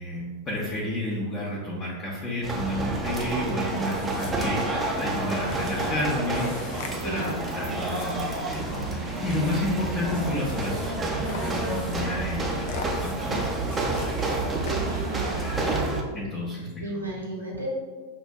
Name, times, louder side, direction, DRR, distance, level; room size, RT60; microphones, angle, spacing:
voice 1, 0.0-14.3 15.3-16.9, left 1 dB, 25° left, -6 dB, 0.8 m, -31 dB
sound 1, 2.4-16.0, right 2 dB, 15° right, 0.6 m, -29 dB
sound 2, 3.6-15.3, left 4 dB, 50° left, 0.4 m, -44 dB
voice 2, 7.0-7.4 14.6-15.8 16.8-17.7, right 2 dB, 80° right, -3 dB, 0.8 m, -34 dB
5.9 x 2.5 x 2.2 m, 1.4 s
figure-of-eight pair, 90°, 0 cm